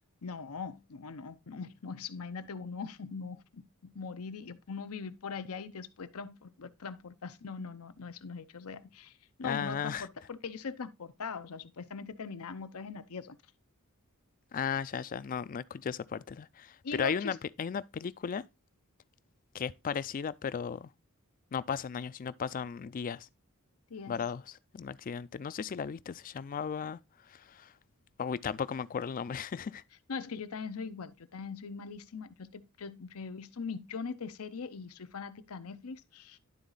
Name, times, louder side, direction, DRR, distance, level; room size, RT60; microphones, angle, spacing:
voice 1, 0.2-13.4 16.8-17.4 23.9-24.2 30.1-36.4, left 5 dB, 90° left, 0.7 m, -41 dB
voice 2, 9.4-10.1 14.5-18.5 19.5-20.9 21.5-23.3 24.1-27.7 28.2-29.8, left 7 dB, 40° left, 0.3 m, -36 dB
11.0 x 4.0 x 3.8 m
head